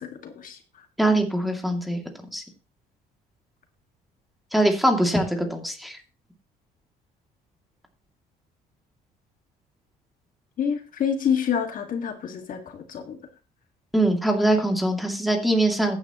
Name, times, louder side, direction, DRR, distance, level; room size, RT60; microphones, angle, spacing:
voice 1, 0.0-0.9 10.6-13.2, left 7 dB, 55° left, 5 dB, 2.0 m, -28 dB
voice 2, 1.0-2.0 2.3-2.4 4.5-6.0 13.9-16.0, right 1 dB, ahead, 2 dB, 2.6 m, -22 dB
14.0 x 9.8 x 3.1 m, 0.33 s
cardioid pair, 110°, 17 cm